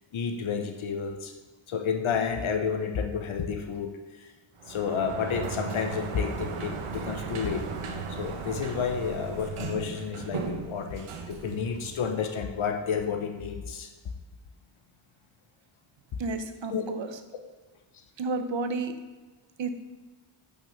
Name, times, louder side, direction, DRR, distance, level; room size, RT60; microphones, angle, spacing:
voice 1, 0.1-1.3 1.7-4.3 4.7-7.6 8.1-13.9 16.7-16.9, left 6 dB, 75° left, 5 dB, 1.1 m, -31 dB
Sliding door, 4.6-12.4, right 5 dB, 85° right, 1.2 m, -36 dB
voice 2, 16.2-17.2 18.2-19.0 19.6-19.7, right 3 dB, 60° right, 8 dB, 1.1 m, -31 dB
9.1 x 6.1 x 6.6 m, 1.3 s
wide cardioid pair, 135°, 49 cm